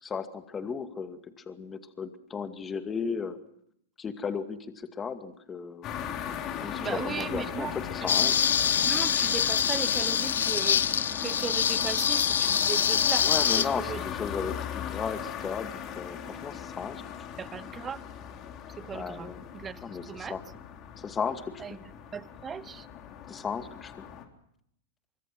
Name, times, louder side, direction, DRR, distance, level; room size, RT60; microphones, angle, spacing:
voice 1, 0.0-1.2 1.5-3.4 4.0-5.9 6.6-8.4 13.2-17.0 18.9-19.4 19.8-20.4 21.0-21.8 23.3-23.9, left 6 dB, 20° left, 2.3 m, -35 dB
sound 1, 5.8-24.2, left 8 dB, 40° left, 3.7 m, -38 dB
voice 2, 6.8-7.7 8.0-8.3 8.8-13.3 13.6-14.0 17.4-18.0 18.8-20.4 21.6-21.8 22.1-22.9, right 7 dB, 20° right, 1.0 m, -37 dB
sound 2, 8.1-13.7, left 8 dB, 85° left, 1.0 m, -25 dB
24.5 x 24.0 x 6.1 m
hypercardioid pair, 110°, 0 cm